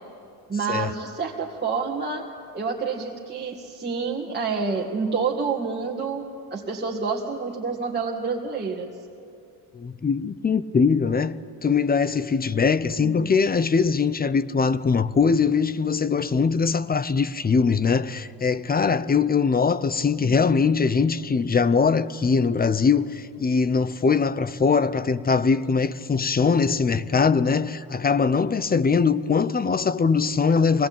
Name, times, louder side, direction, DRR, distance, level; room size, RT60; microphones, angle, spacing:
voice 1, 0.5-2.3 2.5-6.2 6.5-8.9 13.0-13.3 20.2-20.4, right 5 dB, 20° right, 2.0 m, -28 dB
voice 2, 9.7-30.9, left 5 dB, 20° left, 0.7 m, -22 dB
23.5 x 19.0 x 8.8 m
supercardioid pair, 85°, 50 cm